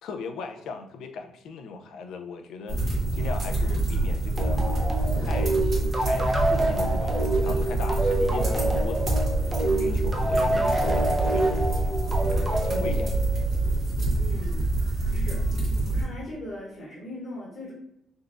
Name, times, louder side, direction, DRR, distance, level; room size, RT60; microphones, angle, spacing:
voice 1, 0.0-4.6 5.2-9.3 9.6-11.9 12.3-13.1, left 4 dB, 80° left, 6 dB, 0.4 m, -38 dB
sound 1, 2.7-16.0, right 2 dB, 50° right, 1.1 m, -26 dB
sound 2, 4.4-13.6, right 1 dB, 20° right, 0.6 m, -27 dB
voice 2, 14.2-14.7 15.1-15.4 15.8-17.7, left 1 dB, 50° left, -3 dB, 1.0 m, -39 dB
3.8 x 2.3 x 2.4 m, 0.79 s
cardioid pair, 90°, 0 cm